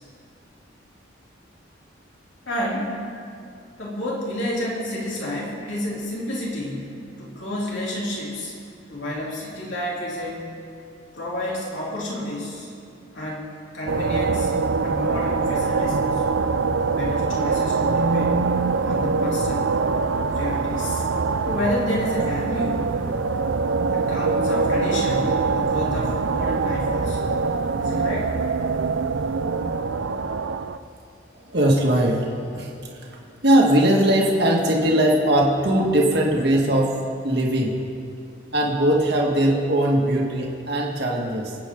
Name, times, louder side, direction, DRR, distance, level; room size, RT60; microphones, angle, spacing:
voice 1, 2.5-3.0 3.8-8.5 8.9-10.5 11.1-12.7 13.1-14.5 14.8-16.4 16.8-18.4 18.8-19.7 20.3-21.0 21.5-22.9 23.9-27.3 27.8-28.4, left 1 dB, 70° left, -5 dB, 3.5 m, -30 dB
sound 1, 13.9-30.8, right 4 dB, 75° right, 0.5 m, -23 dB
voice 2, 31.3-33.2 33.4-37.0 37.2-37.8 38.5-41.6, right 1 dB, 55° right, -2 dB, 2.1 m, -20 dB
26.0 x 8.8 x 3.9 m, 2.5 s
head